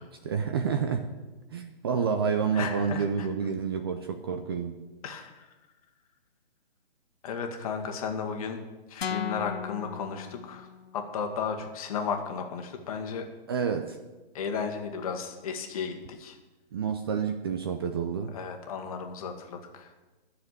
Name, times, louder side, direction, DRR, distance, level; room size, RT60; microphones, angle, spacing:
voice 1, 0.2-1.1 1.5-4.8 13.5-14.0 16.7-18.4, right 6 dB, 25° right, 7 dB, 0.5 m, -29 dB
voice 2, 2.5-3.3 5.0-5.5 7.2-8.6 8.9-10.7 10.9-13.3 14.3-16.4 18.3-19.9, left 6 dB, 35° left, 4 dB, 1.7 m, -34 dB
sound 1, 9.0-11.1, left 6 dB, 70° left, 0.8 m, -36 dB
13.0 x 6.9 x 8.2 m, 1.2 s
hypercardioid pair, 145°, 31 cm